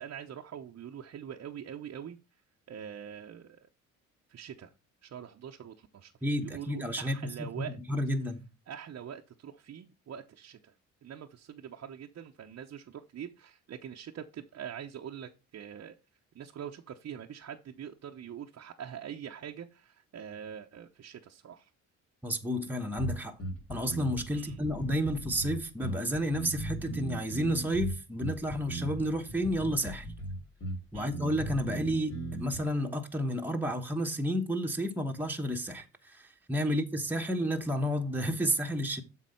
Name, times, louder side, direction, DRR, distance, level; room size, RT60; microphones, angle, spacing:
voice 1, 0.0-2.2 2.7-3.7 4.3-4.7 5.0-6.1 6.4-7.8 8.7-10.7 11.0-16.0 16.3-21.7 24.3-24.6 30.9-31.1 36.7-36.8, right 9 dB, 45° right, 0.8 m, -44 dB
voice 2, 6.2-7.5 7.9-8.4 22.2-23.4 23.7-30.1 30.9-39.0, equal, 5° right, 1.1 m, -31 dB
sound 1, 23.0-32.6, right 1 dB, 45° left, 3.5 m, -38 dB
7.5 x 4.1 x 5.5 m
supercardioid pair, 75°, 34 cm